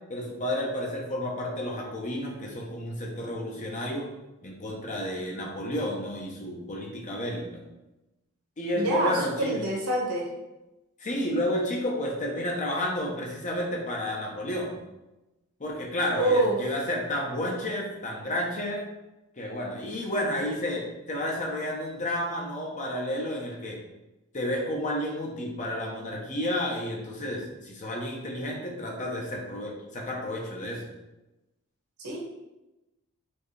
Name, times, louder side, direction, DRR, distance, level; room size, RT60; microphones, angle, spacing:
voice 1, 0.1-4.1 4.4-7.6 8.6-9.6 11.0-14.8 15.6-18.8 19.4-23.8 24.3-30.8, left 1 dB, 35° left, -1 dB, 0.8 m, -31 dB
voice 2, 8.7-10.3 16.2-16.6 32.0-32.2, right 1 dB, 85° right, -2 dB, 1.2 m, -26 dB
4.4 x 3.0 x 3.3 m, 0.99 s
head